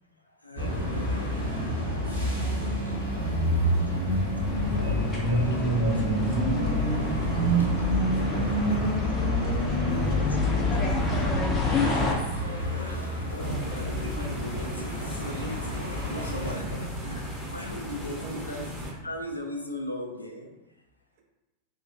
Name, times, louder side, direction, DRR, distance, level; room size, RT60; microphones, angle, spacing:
voice 1, 0.4-1.5 2.9-3.0 4.7-6.4 7.4-7.7 11.8-12.0 12.7-17.2 17.5-18.7 19.0-20.5, left 1 dB, 85° left, 3 dB, 0.3 m, -38 dB
sound 1, 0.6-16.5, right 1 dB, 65° left, 0.9 m, -28 dB
voice 2, 2.3-3.7 7.6-8.7 9.3-11.0 16.5-17.0 18.2-18.4, right 2 dB, 45° right, 0 dB, 0.5 m, -44 dB
sound 2, 4.4-12.1, left 3 dB, 25° left, 0.5 m, -28 dB
sound 3, 13.4-18.9, equal, ahead, 0.8 m, -36 dB
2.9 x 2.2 x 2.4 m, 1.0 s
figure-of-eight pair, 90°, 0 cm